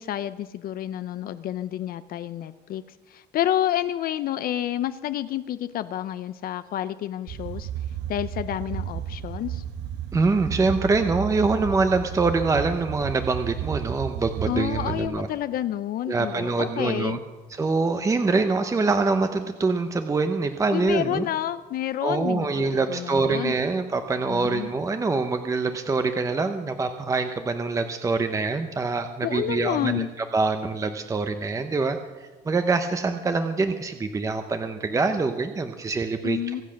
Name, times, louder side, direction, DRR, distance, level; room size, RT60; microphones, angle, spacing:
voice 1, 0.0-2.8 3.1-7.7 8.1-9.6 14.5-17.2 20.7-23.5 24.3-24.7 29.2-30.1 36.2-36.6, left 12 dB, 55° left, 12 dB, 0.5 m, -29 dB
sound 1, 7.3-15.1, right 10 dB, 80° right, 1.1 m, -33 dB
voice 2, 10.1-15.3 16.1-17.2 17.5-21.3 22.0-36.6, right 3 dB, 15° right, 7 dB, 0.8 m, -25 dB
24.0 x 8.2 x 6.4 m, 1.3 s
cardioid pair, 145°, 18 cm